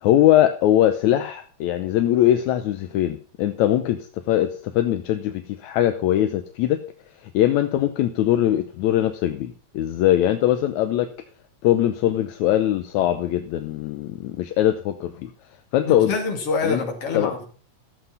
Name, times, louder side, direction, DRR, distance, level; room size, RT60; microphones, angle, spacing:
voice 1, 0.0-6.8 7.3-11.1 11.6-15.3 15.7-16.1 16.6-16.8 17.1-17.3, left 12 dB, 80° left, 8 dB, 2.1 m, -21 dB
voice 2, 15.8-17.4, left 4 dB, 50° left, 2 dB, 3.3 m, -26 dB
14.0 x 7.8 x 5.5 m, 0.41 s
omnidirectional pair, 3.4 m